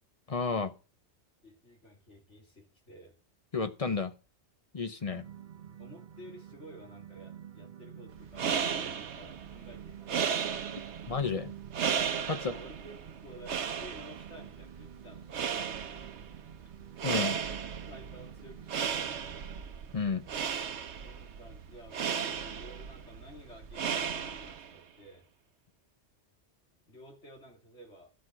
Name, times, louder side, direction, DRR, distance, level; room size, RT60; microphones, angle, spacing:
voice 1, 0.3-0.7 3.5-4.1 4.7-5.2 11.1-11.5 12.3-12.5 17.0-17.4 19.9-20.2, left 4 dB, 35° left, 10 dB, 0.7 m, -31 dB
voice 2, 1.4-3.2 5.8-10.4 12.3-12.9 13.2-15.7 17.9-19.4 21.0-25.3 26.9-28.1, equal, 85° left, 0 dB, 3.2 m, -52 dB
sound 1, 5.1-19.6, right 10 dB, 45° right, 0.9 m, -49 dB
sound 2, 8.2-24.8, right 7 dB, 80° right, 1.1 m, -35 dB
12.5 x 6.2 x 6.0 m, 0.35 s
omnidirectional pair, 1.2 m